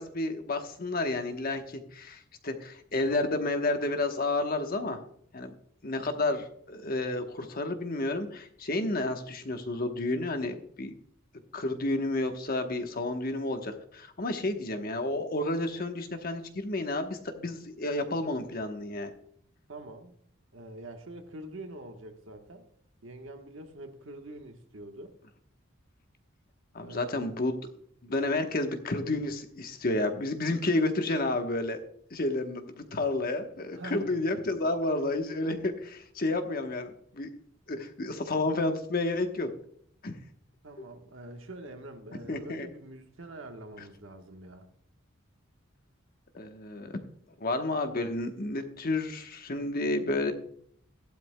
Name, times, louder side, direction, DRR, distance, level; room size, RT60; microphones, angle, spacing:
voice 1, 0.0-5.0 5.3-5.5 5.8-10.9 11.5-19.1 26.7-27.5 28.0-31.8 32.1-37.3 37.7-39.5 40.0-40.1 42.3-42.7 46.3-46.9 47.4-50.3, left 2 dB, 45° left, 1.1 m, -31 dB
voice 2, 19.7-20.2 20.5-22.7 23.0-25.1 26.8-27.3 33.7-34.1 40.6-44.7, right 1 dB, 65° right, 1.2 m, -45 dB
15.5 x 11.5 x 2.2 m
head